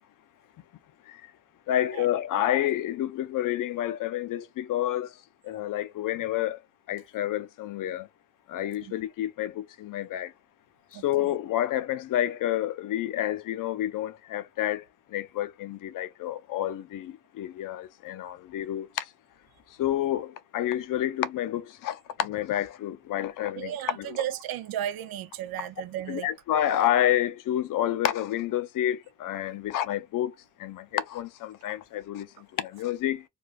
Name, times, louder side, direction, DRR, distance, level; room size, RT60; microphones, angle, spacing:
voice 1, 1.7-5.1 5.4-6.6 6.9-8.1 8.5-10.3 10.9-19.1 19.8-24.2 26.1-30.3 30.6-33.2, left 12 dB, 65° left, 0.5 m, -29 dB
voice 2, 10.9-11.4 23.5-26.3, right 11 dB, 85° right, 0.5 m, -34 dB
3.2 x 2.3 x 2.4 m
cardioid pair, 130°, 35 cm